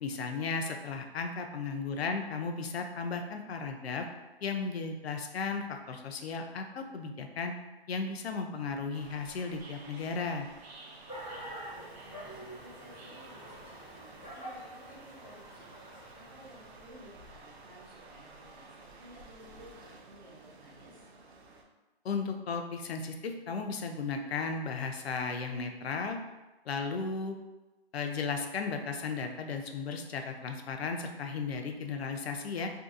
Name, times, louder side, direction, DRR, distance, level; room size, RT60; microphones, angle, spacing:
voice 1, 0.0-4.0 4.4-7.5 7.9-10.5 22.0-26.2 26.7-27.4 27.9-32.7, left 4 dB, 75° left, 4 dB, 0.5 m, -35 dB
sound 1, 8.9-21.6, right 3 dB, 85° right, 0.6 m, -53 dB
sound 2, 11.1-18.1, right 1 dB, 10° left, 0.5 m, -47 dB
voice 2, 11.5-21.1, right 1 dB, 45° right, -4 dB, 0.7 m, -55 dB
2.7 x 2.6 x 2.5 m, 1.1 s
hypercardioid pair, 180°, 31 cm